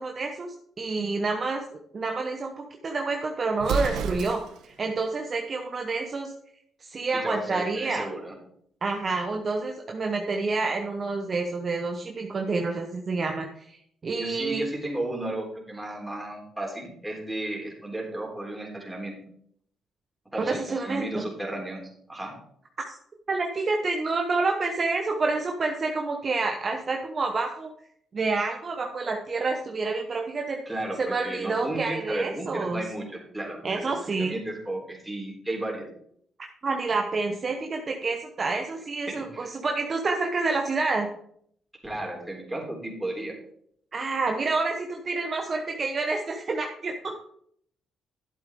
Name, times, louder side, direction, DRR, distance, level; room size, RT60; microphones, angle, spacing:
voice 1, 0.0-1.6 1.9-6.3 6.8-8.1 8.8-13.7 14.0-14.7 20.4-21.3 22.9-23.0 23.3-27.7 28.1-30.6 31.0-32.8 33.6-34.4 36.4-41.1 43.9-47.1, right 3 dB, 40° right, 3 dB, 1.1 m, -28 dB
Explosion, 3.6-4.7, right 5 dB, 80° right, 0.8 m, -30 dB
voice 2, 7.1-8.3 14.1-19.2 20.3-21.8 22.1-22.4 30.7-35.9 39.2-39.5 41.8-43.3, right 1 dB, 10° right, -1 dB, 3.7 m, -34 dB
11.5 x 7.8 x 3.7 m, 0.66 s
cardioid pair, 90°, 0 cm